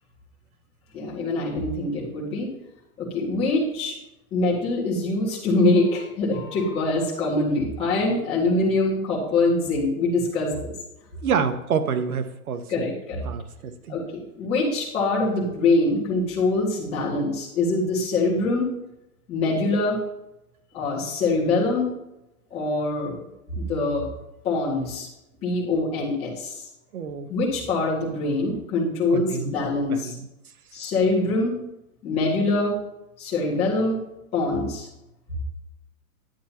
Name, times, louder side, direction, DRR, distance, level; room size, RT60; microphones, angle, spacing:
voice 1, 0.9-2.5 3.0-4.0 4.3-10.7 12.7-13.3 13.9-18.7 19.3-20.0 20.7-21.9 22.5-23.2 23.5-24.1 24.4-25.1 25.4-26.6 27.3-30.1 30.7-31.6 32.0-32.8 33.2-34.0 34.3-34.9, left 2 dB, 15° left, -7 dB, 1.8 m, -24 dB
voice 2, 11.2-12.9 13.2-14.0 26.9-27.3 29.1-29.5 29.9-30.3, right 6 dB, 70° right, 9 dB, 1.0 m, -27 dB
10.0 x 9.2 x 2.9 m, 0.90 s
hypercardioid pair, 180°, 45 cm